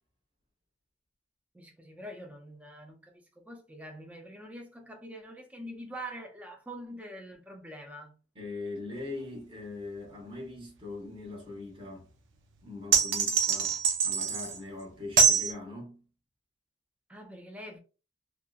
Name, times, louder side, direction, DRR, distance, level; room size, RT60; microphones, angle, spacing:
voice 1, 1.5-8.1 17.1-17.8, right 1 dB, 5° right, 0.4 m, -44 dB
voice 2, 8.3-12.1 12.6-16.0, left 3 dB, 30° right, 1.0 m, -41 dB
sound 1, 12.9-14.6 15.2-15.5, right 6 dB, 85° right, 0.5 m, -24 dB
2.8 x 2.3 x 2.3 m
head